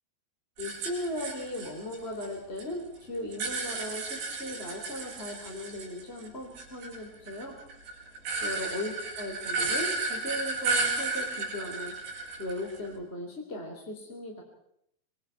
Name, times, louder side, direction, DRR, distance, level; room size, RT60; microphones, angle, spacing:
voice 1, 0.6-7.5 8.4-11.9 12.4-14.4, left 1 dB, 15° left, 1 dB, 2.8 m, -37 dB
sound 1, 0.6-2.6 2.9-6.3 6.6-12.9, right 3 dB, 60° right, 7.3 m, -33 dB
26.5 x 25.5 x 4.6 m, 0.74 s
omnidirectional pair, 5.6 m